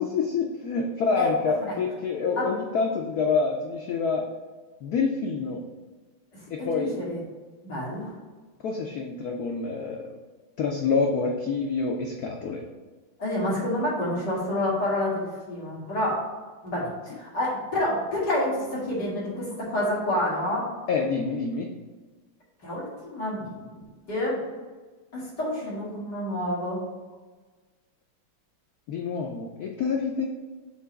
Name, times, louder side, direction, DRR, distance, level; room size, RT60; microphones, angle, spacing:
voice 1, 0.0-4.2 4.8-5.6 6.5-7.0 8.6-10.1 10.6-12.6 20.9-21.7 28.9-30.3, left 4 dB, 85° left, 2 dB, 0.8 m, -27 dB
voice 2, 6.6-7.2 7.6-8.1 13.2-16.2 16.6-20.7 22.6-23.8 24.1-24.4 25.1-26.8, left 1 dB, 50° left, -8 dB, 2.9 m, -28 dB
5.9 x 3.9 x 5.6 m, 1.3 s
omnidirectional pair, 2.4 m